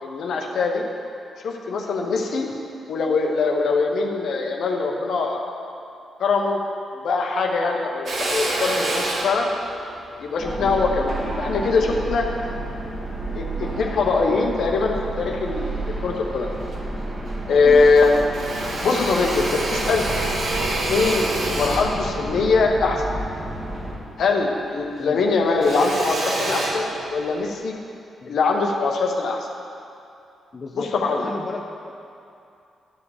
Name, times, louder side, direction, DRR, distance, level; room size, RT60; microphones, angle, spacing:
voice 1, 0.0-0.8 1.4-2.5 2.9-5.4 6.2-6.6 6.9-9.5 10.2-12.3 13.3-16.5 17.5-18.2 18.8-20.0 20.8-23.0 24.2-27.7 28.3-29.5 30.8-31.3, left 4 dB, 70° left, 1 dB, 1.0 m, -22 dB
Drill, 8.1-12.6 13.2-14.3 14.8-15.7 16.1-16.2 16.4-17.4 17.7-24.4 24.7-27.5, right 2 dB, 65° right, 1.4 m, -29 dB
sound 1, 10.4-24.0, right 1 dB, 45° right, 1.9 m, -31 dB
voice 2, 30.5-31.6, left 3 dB, 45° left, 1 dB, 0.7 m, -35 dB
12.0 x 5.1 x 4.9 m, 2.6 s
supercardioid pair, 50°, 0 cm